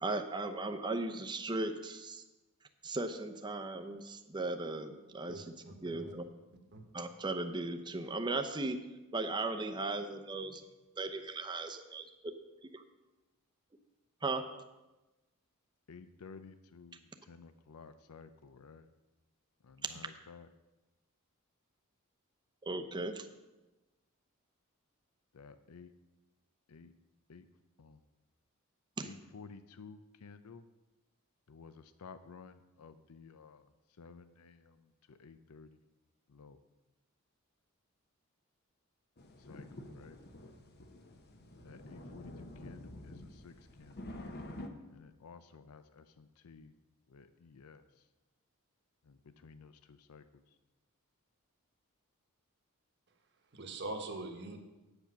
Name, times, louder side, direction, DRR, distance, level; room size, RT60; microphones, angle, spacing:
voice 1, 0.0-2.2 2.8-5.5 5.8-6.2 6.9-8.8 9.1-10.6 11.0-12.1 12.7-12.8 14.2-14.4 22.6-23.3 29.0-29.1, right 2 dB, 20° right, 5 dB, 0.7 m, -37 dB
voice 2, 5.3-6.1 6.7-6.8 53.5-54.6, right 2 dB, 55° right, 4 dB, 1.3 m, -43 dB
voice 3, 15.9-18.9 19.6-20.5 25.3-25.9 26.7-26.9 27.3-27.5 27.8-28.0 29.0-30.6 31.5-33.7 34.0-35.8 36.3-36.6 39.4-40.2 41.6-44.1 44.9-46.7 47.1-47.8 49.0-50.4, left 5 dB, 85° left, 11 dB, 0.5 m, -54 dB
sound 1, 39.2-44.7, left 1 dB, 50° left, 1.0 m, -48 dB
8.7 x 8.1 x 6.0 m, 1.1 s
head